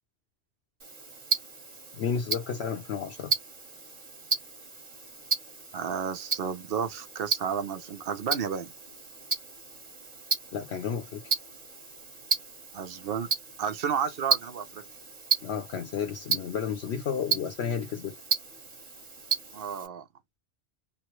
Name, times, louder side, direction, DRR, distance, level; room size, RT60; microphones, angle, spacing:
Tick-tock, 0.8-19.9, right 5 dB, 35° right, 1.1 m, -34 dB
voice 1, 1.9-3.3 10.5-11.3 15.4-18.1, left 7 dB, 65° left, 0.9 m, -32 dB
voice 2, 5.7-8.7 12.7-13.3 13.6-14.8 19.5-20.0, right 7 dB, 55° right, 0.9 m, -32 dB
3.1 x 2.0 x 3.0 m
omnidirectional pair, 1.2 m